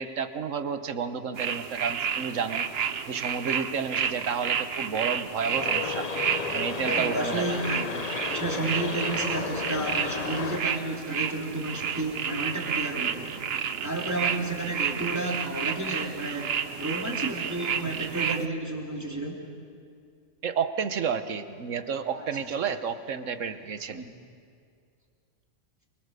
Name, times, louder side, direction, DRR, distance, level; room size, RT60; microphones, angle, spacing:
voice 1, 0.0-2.7 3.1-6.1 6.5-7.6 20.4-24.0, right 6 dB, 75° right, 10 dB, 1.4 m, -31 dB
sound 1, 1.4-18.5, right 7 dB, 55° right, 1.0 m, -31 dB
sound 2, 5.5-10.6, left 5 dB, 35° left, 0.8 m, -33 dB
voice 2, 6.8-13.4 13.8-16.5 16.8-19.4 22.1-22.3 23.9-24.1, right 2 dB, 15° right, -2 dB, 3.3 m, -32 dB
27.5 x 23.5 x 6.8 m, 2.3 s
omnidirectional pair, 1.3 m